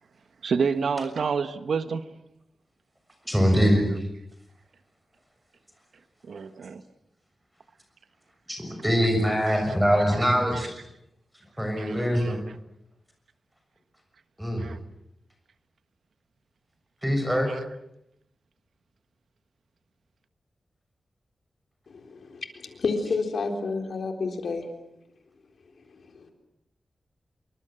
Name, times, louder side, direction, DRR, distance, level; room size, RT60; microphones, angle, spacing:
voice 1, 0.4-2.1 6.2-6.8 9.5-9.7 10.1-10.2 11.8-12.4 14.6-14.8 17.5-17.6, right 5 dB, 85° right, 1.4 m, -29 dB
voice 2, 3.2-3.8 8.5-10.8 11.6-12.4 14.4-14.7 17.0-17.5, equal, 5° right, 6.8 m, -23 dB
voice 3, 21.9-24.7 25.9-26.3, left 4 dB, 70° left, 3.9 m, -30 dB
27.5 x 23.5 x 7.8 m
wide cardioid pair, 160°, 0 cm